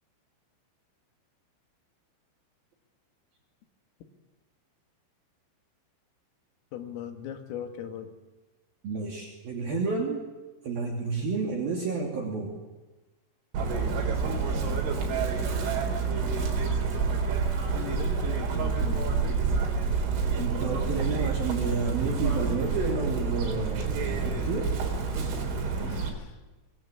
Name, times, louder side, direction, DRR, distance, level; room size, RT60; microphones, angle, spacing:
voice 1, 6.7-8.1 17.7-19.1 20.9-21.0 24.4-24.5 25.7-26.4, left 9 dB, 90° left, 6 dB, 4.8 m, -39 dB
voice 2, 8.8-10.2 10.6-12.5 20.3-24.7, right 4 dB, 50° right, 1 dB, 4.1 m, -31 dB
Chirp tweet, 13.5-26.1, right 5 dB, 70° right, 6.1 m, -28 dB
25.0 x 22.0 x 8.5 m, 1.2 s
omnidirectional pair, 5.8 m